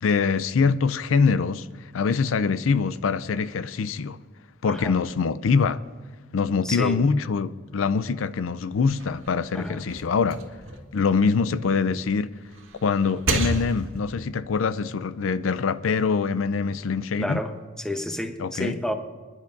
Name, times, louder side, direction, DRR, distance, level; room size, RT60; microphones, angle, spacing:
voice 1, 0.0-4.2 4.6-5.8 6.3-10.4 10.9-12.3 12.8-17.4 18.4-18.7, left 5 dB, 80° left, 0.4 m, -24 dB
voice 2, 4.6-5.0 6.6-7.1 9.5-9.9 17.2-18.9, left 1 dB, 5° left, 0.9 m, -30 dB
sound 1, 8.7-11.9 12.4-14.2, right 3 dB, 75° right, 1.8 m, -32 dB
28.0 x 10.5 x 2.6 m
head